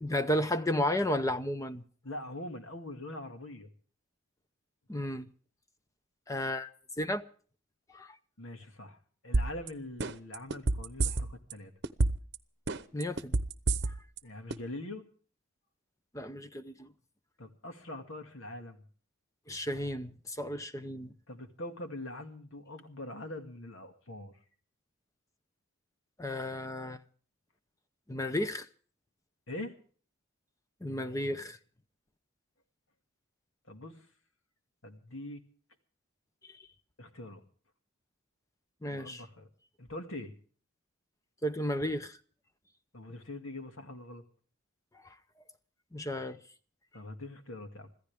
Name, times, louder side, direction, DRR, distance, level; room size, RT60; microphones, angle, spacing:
voice 1, 0.0-1.8 4.9-5.3 6.3-6.7 7.0-7.2 7.9-8.2 12.9-13.4 13.8-13.9 16.1-16.9 19.5-21.1 26.2-27.0 28.1-28.7 30.8-31.6 36.5-36.6 38.8-39.2 41.4-42.2 45.9-46.4, left 1 dB, 15° left, 0.7 m, -33 dB
voice 2, 2.0-3.7 8.4-9.0 9.2-11.7 14.2-15.1 17.4-18.8 21.3-24.3 29.5-29.8 33.7-34.1 34.8-35.4 37.0-37.4 38.9-39.5 39.8-40.3 42.9-44.2 46.9-47.9, left 1 dB, 70° left, 2.2 m, -43 dB
sound 1, 9.3-9.7 10.0-11.5 11.8-12.3 12.7-14.2 14.5-14.6, right 2 dB, 55° right, 0.9 m, -28 dB
26.0 x 15.0 x 3.5 m
head